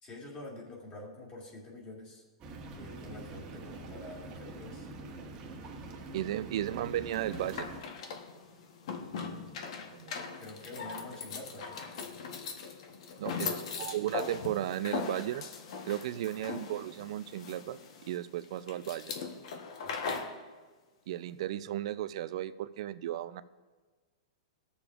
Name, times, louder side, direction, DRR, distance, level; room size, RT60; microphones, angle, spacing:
voice 1, 0.0-2.2 2.8-4.9 10.4-11.9 12.9-13.0 13.3-13.7 16.4-16.5 19.8-20.2, left 2 dB, 25° left, -3 dB, 2.0 m, -47 dB
sound 1, 2.4-7.8, right 2 dB, 30° right, 1.1 m, -45 dB
voice 2, 6.1-7.7 10.0-10.1 13.2-15.5 15.8-17.8 18.1-19.1 21.1-23.4, right 12 dB, 60° right, 14 dB, 0.4 m, -35 dB
sound 2, 7.1-20.4, left 5 dB, 65° left, 1.0 m, -40 dB
20.0 x 6.9 x 2.4 m, 1.4 s
hypercardioid pair, 150°, 4 cm